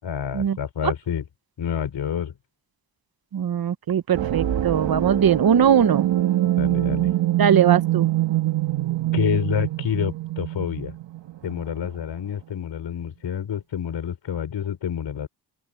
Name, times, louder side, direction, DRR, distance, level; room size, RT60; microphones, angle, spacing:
voice 1, 0.0-1.3 1.6-2.3 6.4-7.1 9.1-10.9 11.4-15.3, left 8 dB, 85° left, 4.0 m, -28 dB
voice 2, 3.3-6.1 7.4-8.1, right 8 dB, 55° right, 1.0 m, -20 dB
sound 1, 4.1-11.9, right 14 dB, 85° right, 1.6 m, -24 dB
sound 2, 4.6-9.8, left 6 dB, 65° left, 8.0 m, -49 dB
open air
wide cardioid pair, 115°, 43 cm